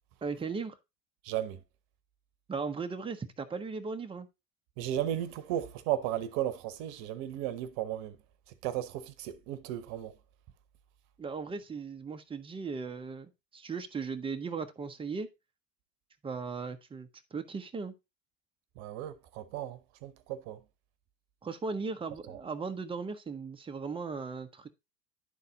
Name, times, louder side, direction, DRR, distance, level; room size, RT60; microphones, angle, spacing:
voice 1, 0.2-0.8 2.5-4.3 11.2-15.3 16.2-17.9 21.4-24.7, right 4 dB, 10° right, 0.6 m, -37 dB
voice 2, 1.2-1.6 4.8-8.2 8.6-10.1 18.8-20.6 22.3-22.4, right 12 dB, 50° right, 0.9 m, -35 dB
11.0 x 4.1 x 3.8 m
hypercardioid pair, 90°, 50 cm